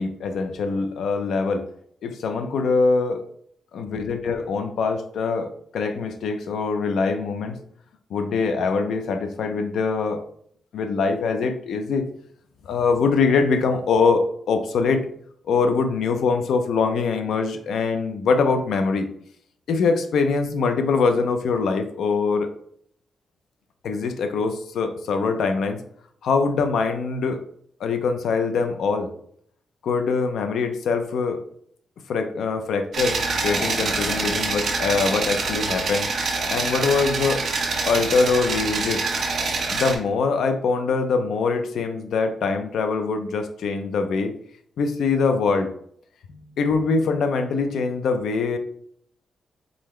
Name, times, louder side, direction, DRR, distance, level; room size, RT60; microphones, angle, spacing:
voice 1, 0.0-1.7 2.0-3.2 3.7-7.6 8.1-10.2 10.7-12.0 12.7-15.1 15.5-19.1 19.7-22.5 23.8-25.8 26.2-27.4 27.8-29.1 29.8-31.4 32.1-33.2 33.4-36.1 36.5-37.4 37.8-39.1 39.7-44.3 44.8-45.7 46.3-48.6, left 4 dB, 75° left, 6 dB, 0.6 m, -23 dB
sound 1, 32.9-39.9, right 3 dB, 50° right, 0.8 m, -25 dB
4.0 x 3.9 x 3.2 m, 0.65 s
wide cardioid pair, 155°, 0 cm